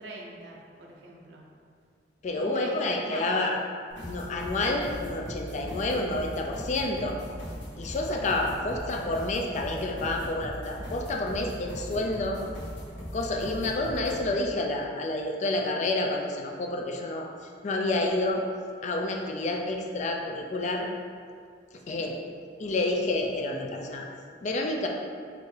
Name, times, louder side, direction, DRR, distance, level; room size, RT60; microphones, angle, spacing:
voice 1, 0.0-1.4 2.3-3.4 21.8-22.0, right 2 dB, 75° right, -2 dB, 0.6 m, -42 dB
voice 2, 2.2-3.6 4.0-7.2 7.8-12.4 13.1-17.3 17.6-18.4 18.8-20.9 21.9-22.2 22.6-24.1 24.4-24.9, left 2 dB, 40° left, 1 dB, 0.3 m, -29 dB
sound 1, 3.9-14.2, equal, 90° left, 1.0 m, -39 dB
4.4 x 2.5 x 3.2 m, 2.2 s
head